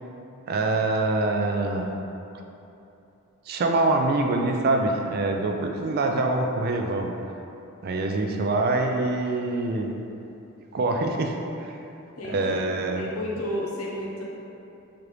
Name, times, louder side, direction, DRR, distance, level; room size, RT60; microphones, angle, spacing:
voice 1, 0.5-1.9 3.5-7.1 7.8-9.9 10.7-11.8 12.2-13.1, right 2 dB, 45° right, 3 dB, 0.3 m, -25 dB
voice 2, 12.2-12.6 13.0-14.2, left 1 dB, 85° left, -4 dB, 0.7 m, -32 dB
4.8 x 2.5 x 3.0 m, 2.9 s
head